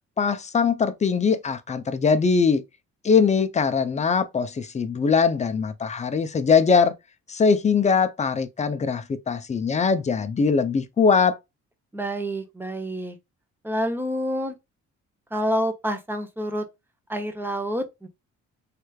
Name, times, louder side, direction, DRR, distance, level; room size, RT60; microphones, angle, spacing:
voice 1, 0.2-2.6 3.0-6.9 7.3-11.4, left 5 dB, 25° left, 0.5 m, -21 dB
voice 2, 11.9-13.2 13.6-14.6 15.3-16.6 17.1-18.1, equal, 5° right, 0.8 m, -28 dB
3.3 x 3.0 x 2.3 m
cardioid pair, 90°, 30 cm